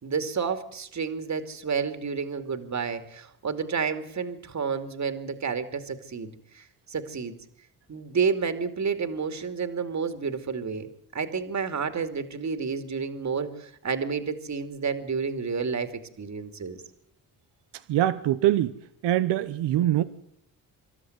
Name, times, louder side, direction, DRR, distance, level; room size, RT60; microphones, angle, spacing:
voice 1, 0.0-7.4 7.9-10.9 11.1-15.9 16.2-16.8, right 5 dB, 45° right, 9 dB, 2.6 m, -30 dB
voice 2, 17.9-18.7 19.0-20.0, right 13 dB, 80° right, 11 dB, 1.0 m, -23 dB
26.0 x 13.0 x 9.5 m, 0.71 s
supercardioid pair, 60°, 41 cm